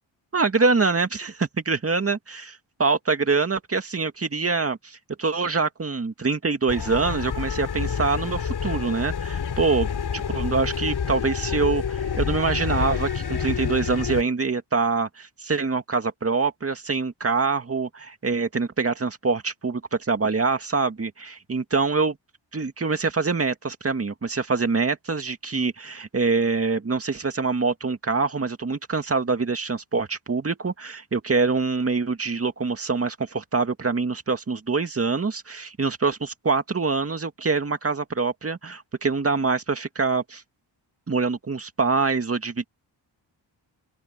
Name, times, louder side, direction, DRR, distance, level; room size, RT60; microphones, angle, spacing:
voice 1, 0.3-22.2 22.5-40.4 41.1-42.6, right 4 dB, 30° right, 2.1 m, -25 dB
sound 1, 6.7-14.2, left 7 dB, 60° left, 3.4 m, -28 dB
open air
cardioid pair, 90°, 45 cm